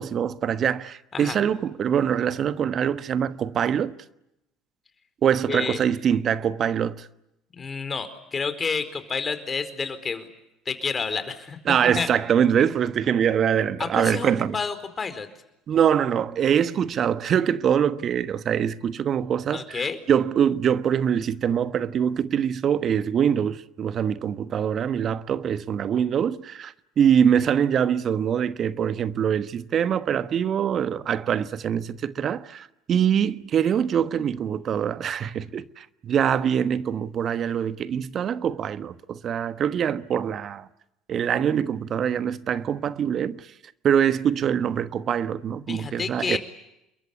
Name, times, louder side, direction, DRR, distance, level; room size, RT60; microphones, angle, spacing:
voice 1, 0.0-3.9 5.2-7.1 11.7-14.6 15.7-40.7 41.1-43.5 43.8-46.4, right 8 dB, 45° right, 1.2 m, -24 dB
voice 2, 5.5-5.8 7.5-10.3 10.7-11.6 12.0-12.1 13.8-15.3 19.5-20.0 45.7-46.4, left 5 dB, 30° left, 4.4 m, -29 dB
29.0 x 22.5 x 8.5 m
hypercardioid pair, 65°, 0 cm